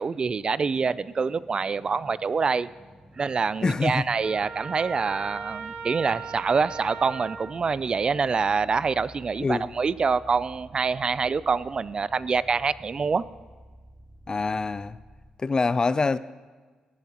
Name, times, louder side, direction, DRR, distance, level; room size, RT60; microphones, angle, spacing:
voice 1, 0.0-2.7 3.2-13.2, right 5 dB, 40° right, 0.4 m, -26 dB
sound 1, 0.6-15.3, right 1 dB, 5° left, 1.8 m, -51 dB
voice 2, 3.6-4.1 9.4-9.7 14.3-15.0 15.4-16.2, left 4 dB, 30° left, 0.4 m, -25 dB
Trumpet, 4.2-7.6, right 5 dB, 70° right, 1.2 m, -38 dB
18.0 x 10.5 x 3.0 m
cardioid pair, 70°, 2 cm